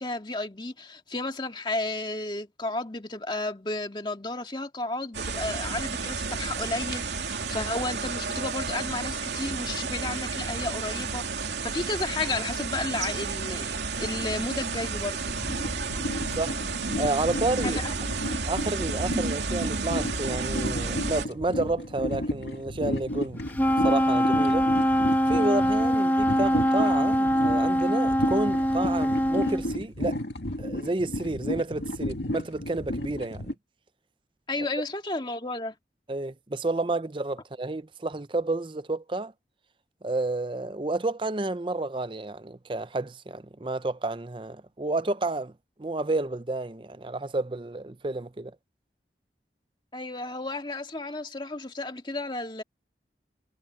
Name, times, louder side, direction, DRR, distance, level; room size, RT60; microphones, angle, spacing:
voice 1, 0.0-13.7 14.0-15.3 17.6-17.9 34.5-35.8 49.9-52.6, left 2 dB, 25° left, 2.0 m, -33 dB
sound 1, 5.1-21.3, right 4 dB, 80° right, 2.7 m, -31 dB
sound 2, 15.3-33.5, left 1 dB, 75° left, 2.0 m, -33 dB
voice 2, 17.0-17.8 18.4-24.7 25.3-30.2 30.6-33.5 34.6-34.7 36.1-39.3 40.0-45.5 45.8-48.6, right 2 dB, 30° right, 0.6 m, -30 dB
Wind instrument woodwind instrument, 23.5-29.7, equal, 10° left, 1.1 m, -23 dB
head